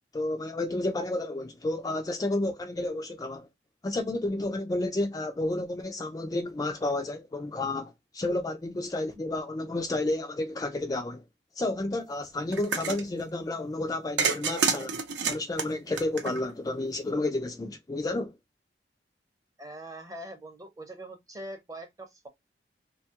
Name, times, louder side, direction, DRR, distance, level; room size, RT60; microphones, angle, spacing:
voice 1, 0.1-3.5 3.8-11.2 11.6-18.3, left 2 dB, 20° left, 0.3 m, -31 dB
sound 1, 12.5-13.0 14.2-16.7, right 5 dB, 85° right, 0.6 m, -29 dB
voice 2, 19.6-22.3, right 1 dB, 20° right, 0.6 m, -42 dB
2.8 x 2.3 x 2.7 m
head